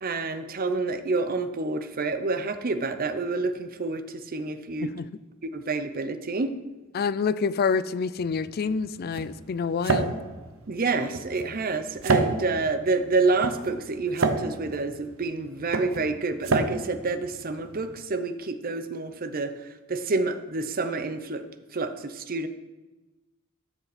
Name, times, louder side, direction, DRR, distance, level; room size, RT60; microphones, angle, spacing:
voice 1, 0.0-4.9 5.5-6.5 10.7-19.5 19.9-21.4 21.7-22.5, right 3 dB, 45° right, 9 dB, 0.7 m, -28 dB
voice 2, 6.9-10.1, left 5 dB, 50° left, 16 dB, 0.4 m, -27 dB
sound 1, 8.2-18.0, right 3 dB, 70° right, 0.8 m, -30 dB
13.0 x 7.0 x 4.2 m, 1.1 s
head